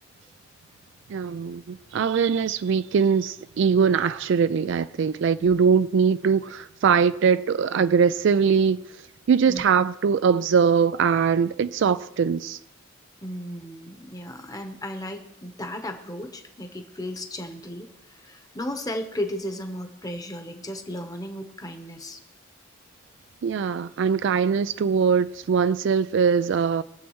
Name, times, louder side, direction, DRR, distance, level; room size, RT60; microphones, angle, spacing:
voice 1, 1.1-8.8 9.3-12.6 23.4-26.8, right 6 dB, 65° right, 0.3 m, -21 dB
voice 2, 13.2-22.2, left 1 dB, 20° left, 1.0 m, -35 dB
22.0 x 7.4 x 3.1 m
head